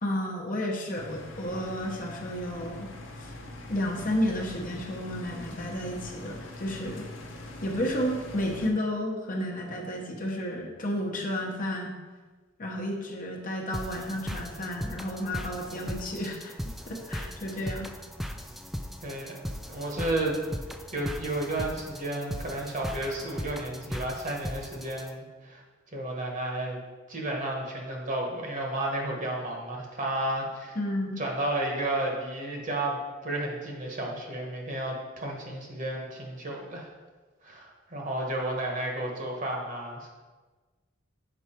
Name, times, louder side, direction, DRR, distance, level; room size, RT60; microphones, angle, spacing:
voice 1, 0.0-2.9 3.2-3.3 3.7-7.1 7.6-11.9 12.6-16.5 16.9-17.9 30.8-31.2, left 1 dB, 45° left, 0 dB, 1.0 m, -32 dB
sound 1, 0.9-8.7, left 2 dB, 75° left, 0.9 m, -43 dB
sound 2, 13.7-25.1, equal, ahead, 0.3 m, -38 dB
voice 2, 19.0-20.4 20.9-25.6 25.9-26.8 27.1-30.8 31.2-36.9 37.4-40.1, right 1 dB, 40° right, 0 dB, 1.3 m, -32 dB
7.1 x 4.7 x 4.4 m, 1.3 s
head